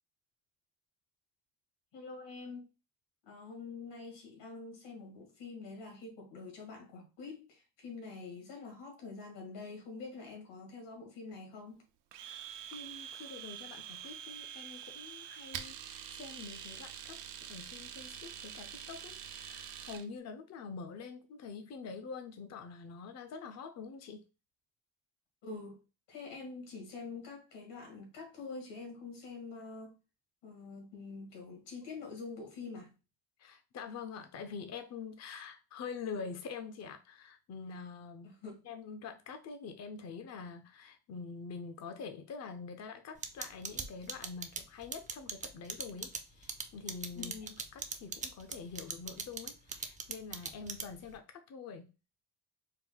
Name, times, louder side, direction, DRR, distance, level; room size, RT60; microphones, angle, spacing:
voice 1, 1.9-2.7 3.3-11.8 25.4-25.8 26.1-30.0 30.4-32.9 38.2-38.6 47.1-47.6, left 4 dB, 85° left, 2.0 m, -46 dB
Domestic sounds home sounds, 12.1-20.1, right 9 dB, 90° right, 0.7 m, -46 dB
voice 2, 12.2-17.2 17.5-24.2 33.4-38.3 38.6-47.3 47.7-51.9, left 5 dB, 40° left, 0.5 m, -45 dB
sound 1, 43.2-51.1, right 5 dB, 20° right, 0.4 m, -39 dB
4.4 x 2.2 x 3.8 m
cardioid pair, 145°, 42 cm